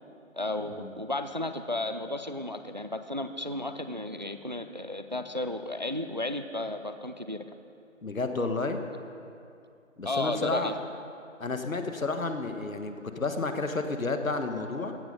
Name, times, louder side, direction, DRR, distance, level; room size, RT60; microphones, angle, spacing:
voice 1, 0.3-7.4 10.0-10.8, left 1 dB, 35° right, 9 dB, 0.4 m, -33 dB
voice 2, 8.0-8.8 10.0-10.7 11.4-14.9, left 3 dB, 85° left, 7 dB, 1.5 m, -31 dB
15.5 x 12.0 x 5.4 m, 2.6 s
figure-of-eight pair, 165°, 40 cm